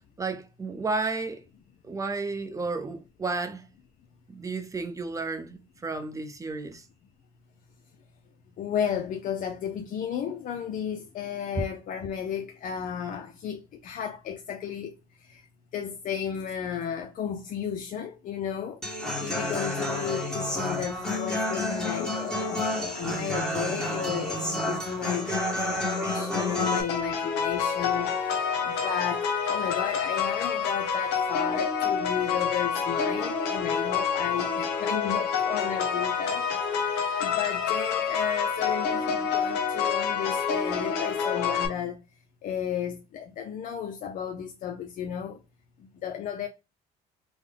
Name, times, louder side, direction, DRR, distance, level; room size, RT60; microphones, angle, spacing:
voice 1, 0.2-1.4 1.8-3.6 4.3-6.8, right 3 dB, 20° right, 0.6 m, -32 dB
voice 2, 8.6-25.3 25.6-36.7 37.2-42.0 42.4-45.4 45.9-46.5, left 8 dB, 55° left, 0.4 m, -33 dB
Human voice / Acoustic guitar, 18.8-26.8, left 1 dB, 5° left, 1.1 m, -30 dB
sound 1, 26.7-41.7, left 6 dB, 90° left, 0.8 m, -28 dB
3.6 x 2.1 x 3.4 m
cardioid pair, 110°, 17 cm